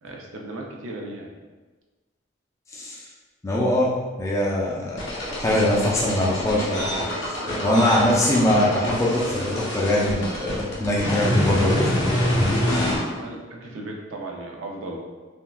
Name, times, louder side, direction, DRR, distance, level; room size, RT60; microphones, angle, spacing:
voice 1, 0.0-1.3 13.1-15.0, right 2 dB, 90° right, 0 dB, 0.5 m, -36 dB
voice 2, 2.7-3.0 3.4-5.1 5.4-6.9 7.2-11.9 12.7-12.8, left 1 dB, 15° left, -4 dB, 0.3 m, -22 dB
sound 1, 5.0-13.0, left 1 dB, 70° left, 0.7 m, -26 dB
sound 2, 5.2-12.2, equal, 45° right, 0.6 m, -37 dB
3.4 x 2.2 x 2.3 m, 1.3 s
head